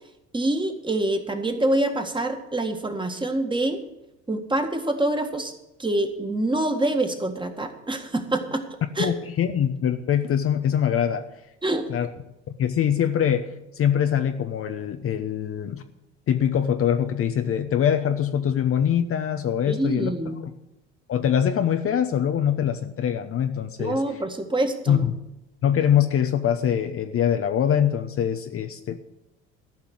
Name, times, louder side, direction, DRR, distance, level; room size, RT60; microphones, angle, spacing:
voice 1, 0.3-3.8 4.3-5.5 5.8-8.7 9.0-9.1 11.6-11.8 19.7-20.4 23.8-25.1, right 1 dB, 15° right, 5 dB, 1.8 m, -25 dB
voice 2, 9.0-11.3 11.9-12.1 12.6-15.8 16.3-20.1 21.1-24.0 24.9-25.1 25.6-29.0, left 9 dB, 40° left, 8 dB, 0.9 m, -23 dB
13.5 x 5.7 x 9.4 m, 0.92 s
hypercardioid pair, 70°, 34 cm